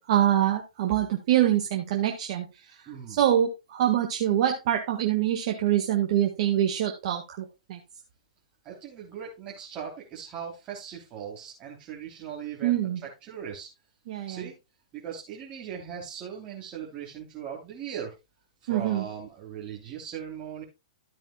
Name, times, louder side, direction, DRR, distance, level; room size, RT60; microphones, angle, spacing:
voice 1, 0.1-2.5 3.2-7.8 12.6-13.0 14.1-14.5 18.7-19.0, right 11 dB, 50° right, 2 dB, 1.6 m, -25 dB
voice 2, 2.9-3.2 8.6-12.8 13.2-13.7 14.3-14.5 14.9-18.1 18.6-20.6, right 8 dB, 30° right, -4 dB, 3.2 m, -39 dB
13.0 x 8.9 x 2.3 m, 0.24 s
hypercardioid pair, 125°, 4 cm